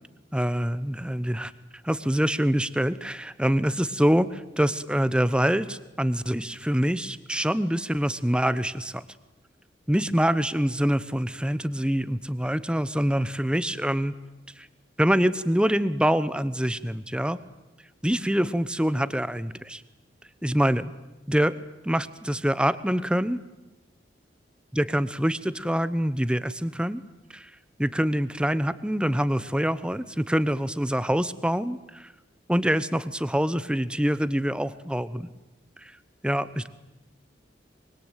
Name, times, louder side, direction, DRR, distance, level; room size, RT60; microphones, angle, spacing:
voice 1, 0.3-1.5 1.8-9.0 9.9-14.1 14.6-14.7 15.0-17.4 18.0-19.8 20.4-20.9 21.3-21.6 21.8-23.4 24.7-27.0 27.3-27.5 27.8-32.1 32.5-35.3 35.8-35.9 36.2-36.7, equal, 5° right, 15 dB, 0.9 m, -25 dB
24.5 x 23.5 x 9.1 m, 1.0 s
head